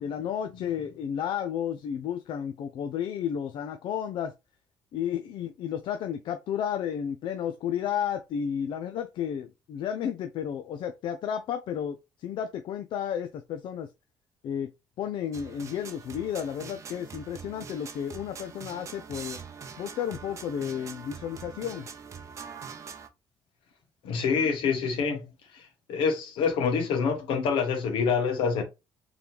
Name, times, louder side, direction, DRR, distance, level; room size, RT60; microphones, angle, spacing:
voice 1, 0.0-4.3 4.9-13.9 14.4-14.7 15.0-19.4 19.8-21.9, left 9 dB, 70° left, 0.5 m, -32 dB
sound 1, 15.3-23.1, right 6 dB, 40° right, 0.7 m, -43 dB
voice 2, 24.0-25.3 25.5-28.6, left 5 dB, 85° left, 1.3 m, -26 dB
3.9 x 2.9 x 3.4 m
cardioid pair, 130°, 8 cm